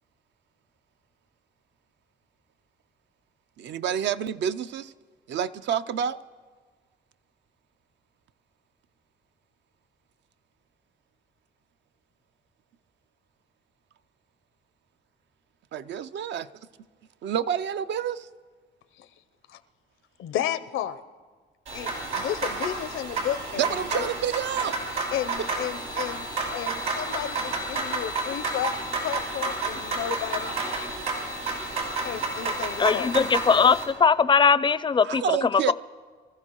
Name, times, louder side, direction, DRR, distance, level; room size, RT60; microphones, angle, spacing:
voice 1, 3.6-4.9 5.3-6.2 15.7-16.5 17.2-18.3 23.6-24.8 35.0-35.7, right 9 dB, 65° right, 0.5 m, -28 dB
voice 2, 20.2-21.0 21.7-24.1 25.1-26.3 26.5-28.7 29.0-30.6 32.0-33.2, left 11 dB, 85° left, 0.6 m, -32 dB
sound 1, 21.7-33.8, right 3 dB, 85° right, 5.4 m, -30 dB
voice 3, 32.8-35.7, left 5 dB, 25° left, 0.4 m, -20 dB
25.0 x 14.5 x 3.0 m
cardioid pair, 90°, 20 cm